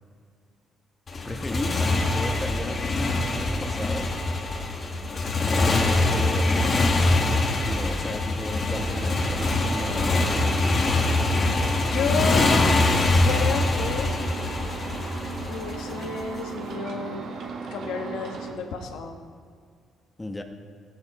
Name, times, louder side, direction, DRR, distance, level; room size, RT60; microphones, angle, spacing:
Motorcycle, 1.1-16.2, left 2 dB, 40° left, 1.6 m, -24 dB
voice 1, 1.2-4.1 5.7-10.6 20.2-20.4, left 1 dB, 15° left, 4 dB, 1.3 m, -34 dB
sound 1, 8.7-18.5, right 5 dB, 70° right, 1.6 m, -36 dB
voice 2, 11.8-12.7 13.2-14.2 15.4-17.2 17.7-19.2, left 5 dB, 85° left, 4 dB, 1.3 m, -31 dB
16.0 x 9.1 x 4.3 m, 2.1 s
cardioid pair, 90°, 0 cm